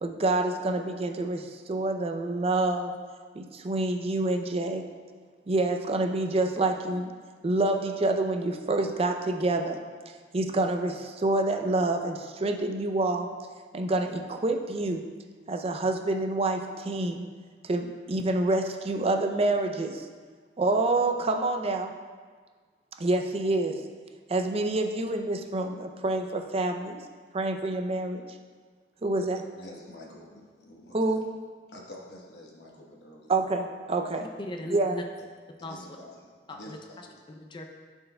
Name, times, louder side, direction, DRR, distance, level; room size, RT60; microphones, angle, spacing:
voice 1, 0.0-2.9 3.4-4.8 5.5-7.1 7.4-9.8 10.3-13.3 13.7-15.0 15.5-17.3 17.6-20.1 20.6-21.9 23.0-23.8 24.3-27.0 27.3-28.3 29.0-29.4 30.9-31.2 33.3-34.3 34.7-35.0, right 2 dB, 35° right, 5 dB, 0.4 m, -27 dB
voice 2, 29.5-31.2 31.7-33.3 35.6-36.1 36.5-37.2, left 1 dB, 65° left, -2 dB, 1.1 m, -47 dB
voice 3, 34.4-35.0 35.6-35.9 36.5-37.7, left 1 dB, 30° left, 3 dB, 0.5 m, -39 dB
11.0 x 4.5 x 2.2 m, 1.5 s
head